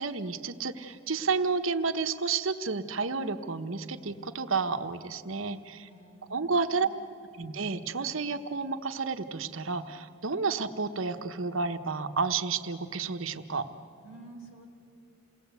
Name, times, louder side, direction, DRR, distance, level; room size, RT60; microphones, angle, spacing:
voice 1, 0.0-5.9 6.3-6.9 7.3-13.7, right 4 dB, 80° right, 8 dB, 1.1 m, -31 dB
voice 2, 5.8-7.1 14.0-14.7, right 2 dB, 90° left, 3 dB, 4.0 m, -51 dB
28.5 x 19.5 x 8.2 m, 2.5 s
head